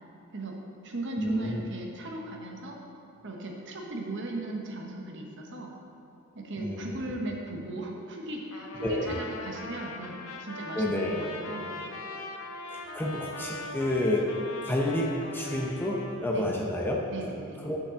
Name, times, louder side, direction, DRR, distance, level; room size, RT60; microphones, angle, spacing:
voice 1, 0.3-2.8 3.2-5.7 6.3-11.9 16.3-16.6 17.1-17.6, right 2 dB, 55° right, 0 dB, 1.1 m, -38 dB
voice 2, 1.2-1.6 6.6-7.0 8.8-9.1 10.8-11.2 12.7-14.3 14.6-17.0 17.6-17.8, left 1 dB, 10° left, -1 dB, 0.7 m, -29 dB
Trumpet, 8.5-16.2, left 2 dB, 75° left, 0.8 m, -41 dB
6.9 x 5.2 x 6.9 m, 2.9 s
head